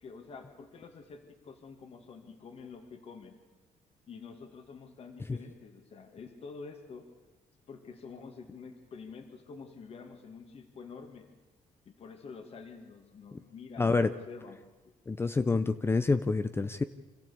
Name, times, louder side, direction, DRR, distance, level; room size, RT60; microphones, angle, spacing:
voice 1, 0.0-3.4 4.1-7.1 7.7-11.3 11.9-14.0 14.3-14.6, left 5 dB, 45° left, 6 dB, 2.2 m, -48 dB
voice 2, 13.8-14.1 15.1-16.8, left 3 dB, 15° left, 12 dB, 0.6 m, -27 dB
26.0 x 14.5 x 8.6 m, 1.2 s
cardioid pair, 145°, 14 cm